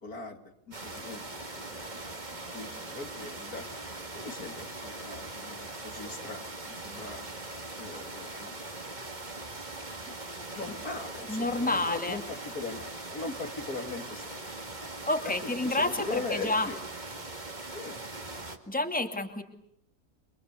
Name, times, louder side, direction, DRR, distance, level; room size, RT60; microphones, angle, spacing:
voice 1, 0.0-2.2 2.5-3.6 4.1-7.3 7.8-8.6 10.1-10.2 10.5-14.5 15.2-16.8 17.7-18.0, left 3 dB, 70° left, 5 dB, 3.0 m, -40 dB
sound 1, 0.7-18.6, right 2 dB, 30° right, 2.4 m, -41 dB
voice 2, 11.3-12.2 15.1-16.7 18.7-19.4, left 2 dB, 5° left, 5 dB, 2.4 m, -29 dB
29.0 x 24.0 x 8.2 m, 0.73 s
omnidirectional pair, 1.6 m